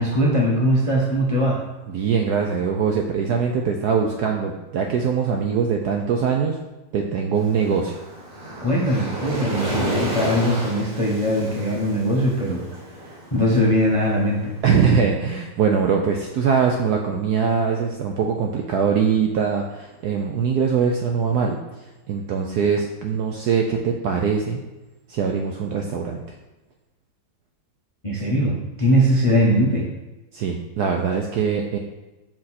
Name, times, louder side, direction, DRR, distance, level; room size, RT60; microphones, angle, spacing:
voice 1, 0.0-1.6 8.6-12.6 13.0-14.5 28.0-29.9, equal, 30° left, -3 dB, 0.6 m, -21 dB
voice 2, 1.9-6.6 6.9-8.0 14.6-21.6 22.1-24.6 25.1-26.2 30.3-31.8, right 6 dB, 70° right, 2 dB, 0.9 m, -22 dB
Waves surf, 7.3-14.5, right 1 dB, 40° right, 2.4 m, -31 dB
6.4 x 4.5 x 4.2 m, 1.1 s
omnidirectional pair, 2.2 m